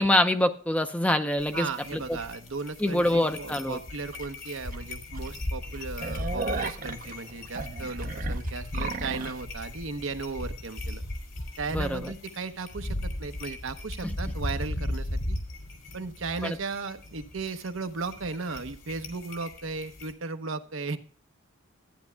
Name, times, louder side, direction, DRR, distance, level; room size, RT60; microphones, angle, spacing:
voice 1, 0.0-1.7 1.9-2.0 2.8-3.8 11.7-12.1 14.0-14.1 16.4-16.6, left 1 dB, 5° left, 7 dB, 0.6 m, -25 dB
sound 1, 1.4-20.1, left 1 dB, 60° left, 3.0 m, -37 dB
voice 2, 1.5-11.0 11.6-15.4 15.9-21.0, right 4 dB, 75° right, 8 dB, 0.9 m, -36 dB
sound 2, 4.1-4.3 4.7-4.8 5.1-5.3 5.6-9.4, right 4 dB, 40° right, 0.6 m, -35 dB
13.0 x 9.5 x 2.2 m, 0.42 s
head